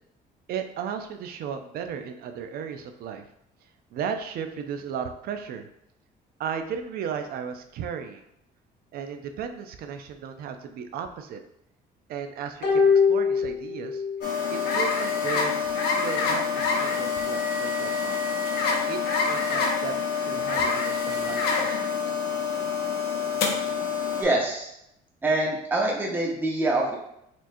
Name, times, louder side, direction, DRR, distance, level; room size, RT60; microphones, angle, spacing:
voice 1, 0.5-3.3 3.6-5.7 6.4-8.2 8.9-11.4 12.1-14.0 14.5-18.2 18.9-19.9 20.2-22.1, right 7 dB, 65° right, 7 dB, 0.5 m, -35 dB
sound 1, 12.6-14.3 14.6-14.7, left 5 dB, 60° left, 1.4 m, -22 dB
sound 2, 14.2-24.2, left 5 dB, 75° left, 0.7 m, -26 dB
voice 2, 24.2-24.7 25.2-27.0, right 2 dB, 10° right, -2 dB, 0.8 m, -25 dB
4.3 x 2.9 x 2.6 m, 0.78 s
cardioid pair, 110°, 17 cm